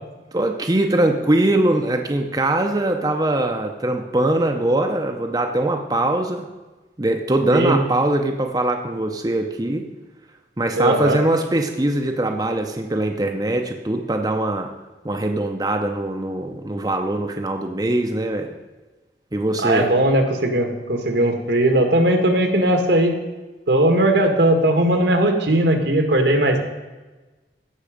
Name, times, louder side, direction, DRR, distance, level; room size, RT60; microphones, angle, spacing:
voice 1, 0.3-6.5 7.0-9.9 10.6-14.7 15.0-18.6 19.3-19.9, right 1 dB, 20° right, 3 dB, 0.7 m, -22 dB
voice 2, 10.8-11.2 19.6-23.2 23.7-26.6, right 1 dB, 80° right, 4 dB, 1.7 m, -18 dB
16.0 x 6.2 x 5.0 m, 1.2 s
head